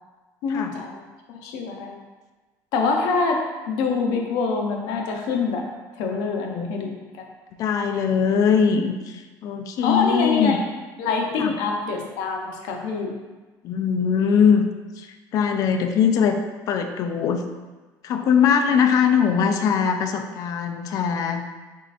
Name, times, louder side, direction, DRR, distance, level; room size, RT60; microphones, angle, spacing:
voice 1, 0.4-1.0 1.4-2.0 2.7-5.6 6.0-7.0 9.8-10.6 11.0-13.1, left 4 dB, 80° left, 1 dB, 0.7 m, -25 dB
voice 2, 7.6-10.6 11.4-11.5 13.6-14.6 15.0-16.4 16.7-17.4 18.0-21.4, left 7 dB, 55° left, 6 dB, 0.4 m, -21 dB
4.2 x 3.7 x 2.5 m, 1.3 s
cardioid pair, 145°, 7 cm